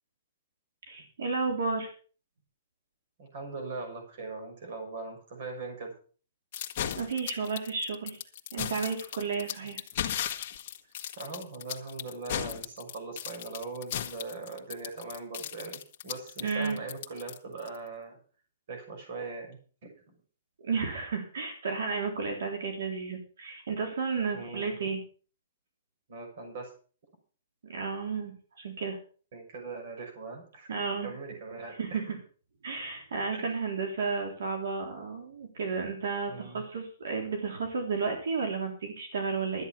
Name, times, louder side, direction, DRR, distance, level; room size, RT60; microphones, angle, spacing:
voice 1, 0.9-1.9 7.0-8.2 8.5-9.8 16.4-16.8 20.6-25.0 27.6-29.0 30.7-31.2 31.7-32.2 32.6-39.6, right 4 dB, 80° right, 3 dB, 3.7 m, -32 dB
voice 2, 3.2-5.9 11.2-18.2 18.7-19.9 24.3-24.7 26.1-26.7 29.3-32.0 33.3-33.5 36.3-36.6, right 3 dB, 45° right, 4 dB, 6.2 m, -40 dB
sound 1, 6.5-17.7, left 10 dB, 35° left, 1.5 m, -36 dB
13.0 x 9.4 x 6.0 m, 0.41 s
hypercardioid pair, 175°, 0 cm